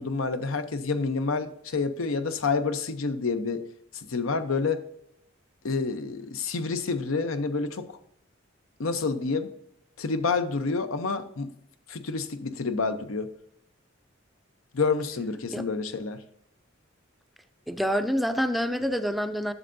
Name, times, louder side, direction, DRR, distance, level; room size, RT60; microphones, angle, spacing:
voice 1, 0.0-3.6 4.1-4.8 5.6-8.0 8.8-9.5 10.0-11.5 11.9-13.3 14.7-16.2, left 4 dB, 85° left, 10 dB, 0.7 m, -28 dB
voice 2, 17.7-19.5, equal, ahead, 9 dB, 0.4 m, -27 dB
11.0 x 6.8 x 2.6 m, 0.77 s
head